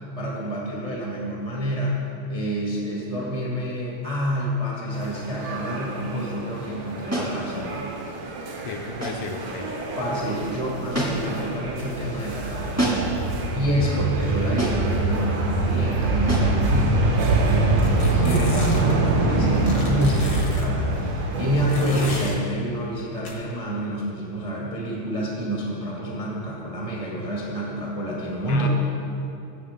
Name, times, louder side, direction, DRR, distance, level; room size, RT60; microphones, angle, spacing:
voice 1, 0.1-2.0 2.3-7.7 10.0-28.7, right 1 dB, 70° right, -5 dB, 0.3 m, -28 dB
sound 1, 4.9-22.3, right 2 dB, 90° right, 2.8 m, -25 dB
sound 2, 7.1-7.4 9.0-9.3 10.9-11.4 12.8-13.2 14.6-14.9 16.3-16.6, right 1 dB, 15° right, 0.5 m, -27 dB
voice 2, 8.6-9.7 13.8-14.1 28.5-28.7, left 4 dB, 80° left, 2 dB, 1.5 m, -33 dB
sound 3, 17.8-18.9 19.7-20.7 21.7-22.4 23.2-23.3, left 3 dB, 60° left, 0.9 m, -36 dB
16.5 x 6.5 x 3.6 m, 2.7 s
omnidirectional pair, 3.5 m